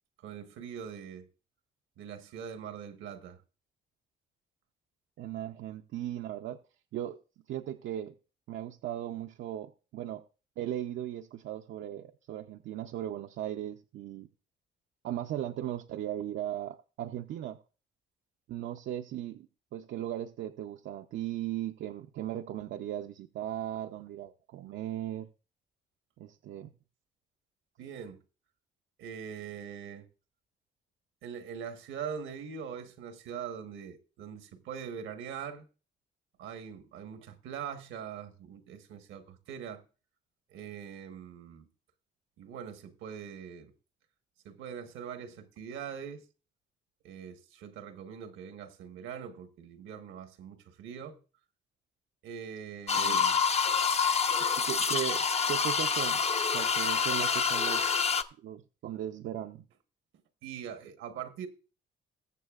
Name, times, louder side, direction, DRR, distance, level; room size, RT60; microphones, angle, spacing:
voice 1, 0.2-1.3 2.0-3.4 27.8-28.2 29.0-30.1 31.2-35.7 36.4-39.8 40.5-41.6 42.4-43.7 44.4-46.2 47.0-51.2 52.2-53.4 60.4-61.5, right 7 dB, 90° right, 1.2 m, -42 dB
voice 2, 5.2-6.6 6.9-7.2 7.5-8.1 8.5-10.2 10.6-14.3 15.0-17.6 18.5-25.3 26.2-26.7 53.0-53.2 54.6-56.2 56.5-58.1 58.4-59.7, right 12 dB, 70° right, 0.6 m, -37 dB
sound 1, 52.9-58.2, left 6 dB, 30° left, 0.6 m, -27 dB
20.5 x 6.9 x 2.4 m
cardioid pair, 90°, 20 cm